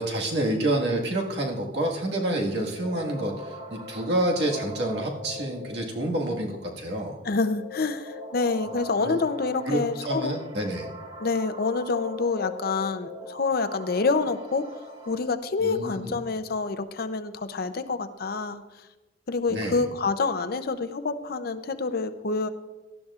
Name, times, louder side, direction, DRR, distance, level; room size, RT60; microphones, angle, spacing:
voice 1, 0.0-7.2 9.0-9.2 9.7-10.9 15.6-16.2 19.5-19.8, right 1 dB, 70° right, -1 dB, 1.7 m, -28 dB
sound 1, 2.0-15.2, left 1 dB, 35° right, 1.9 m, -41 dB
voice 2, 7.2-10.4 11.2-14.7 15.1-18.6 19.3-22.5, left 4 dB, 60° left, 10 dB, 0.6 m, -27 dB
18.0 x 12.0 x 2.5 m, 1.2 s
head